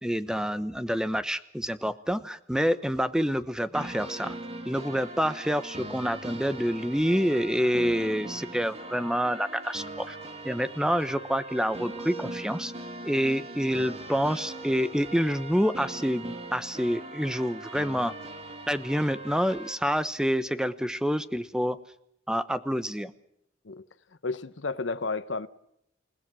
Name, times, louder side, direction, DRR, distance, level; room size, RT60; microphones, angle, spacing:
voice 1, 0.0-4.3 4.7-10.2 10.4-12.7 13.0-18.1 18.7-21.8 22.3-23.1, equal, 5° right, 0.9 m, -27 dB
sound 1, 3.7-19.7, right 2 dB, 35° right, 2.6 m, -40 dB
voice 2, 24.2-25.5, left 3 dB, 85° left, 0.9 m, -32 dB
29.5 x 17.0 x 6.2 m
head